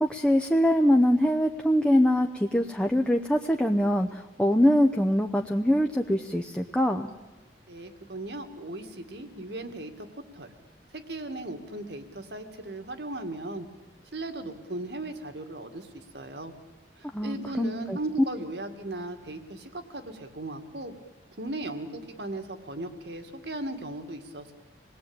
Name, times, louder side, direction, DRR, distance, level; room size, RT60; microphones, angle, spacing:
voice 1, 0.0-7.1 17.1-18.0, equal, 5° left, 3 dB, 0.8 m, -23 dB
voice 2, 7.7-10.1 10.3-10.5 10.9-13.7 14.1-16.5 17.0-20.9 21.4-24.5, right 2 dB, 70° right, 7 dB, 2.2 m, -37 dB
26.5 x 19.5 x 8.9 m, 1.1 s
head